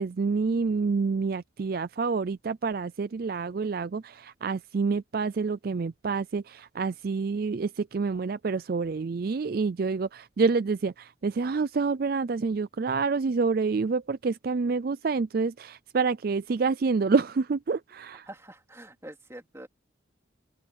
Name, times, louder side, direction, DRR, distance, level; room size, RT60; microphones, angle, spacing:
voice 1, 0.0-18.3, right 4 dB, 50° right, 0.4 m, -28 dB
voice 2, 18.3-19.7, right 1 dB, 15° right, 3.6 m, -45 dB
head